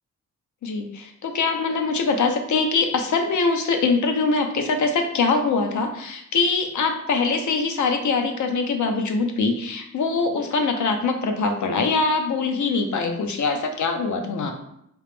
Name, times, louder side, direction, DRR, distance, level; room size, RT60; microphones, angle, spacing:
voice 1, 0.6-14.5, left 4 dB, 60° left, 4 dB, 0.6 m, -23 dB
3.0 x 2.9 x 3.4 m, 0.76 s
wide cardioid pair, 155°, 33 cm